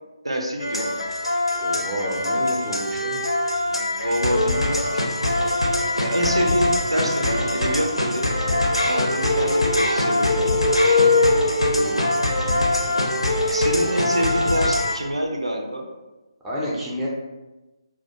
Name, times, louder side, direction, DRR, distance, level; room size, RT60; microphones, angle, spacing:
voice 1, 0.2-1.0 3.6-5.1 6.0-8.3 8.8-10.5 13.5-15.9, equal, 80° right, 1 dB, 0.4 m, -26 dB
sound 1, 0.6-15.0, left 2 dB, 80° left, 0.4 m, -22 dB
voice 2, 1.6-3.2 11.7-12.1 16.4-17.1, equal, 5° right, -6 dB, 0.4 m, -30 dB
2.2 x 2.1 x 2.7 m, 1.1 s
figure-of-eight pair, 145°, 3 cm